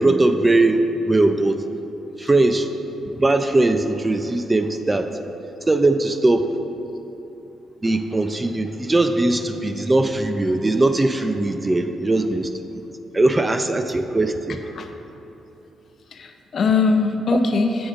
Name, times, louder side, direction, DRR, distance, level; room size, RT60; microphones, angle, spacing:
voice 1, 0.0-1.6 2.2-2.7 3.1-5.1 5.7-6.5 7.8-12.5 13.1-14.6, right 2 dB, 20° right, 7 dB, 0.4 m, -20 dB
voice 2, 16.1-17.9, left 4 dB, 55° left, 6 dB, 0.6 m, -21 dB
8.0 x 5.0 x 4.9 m, 2.9 s
cardioid pair, 75°, 0 cm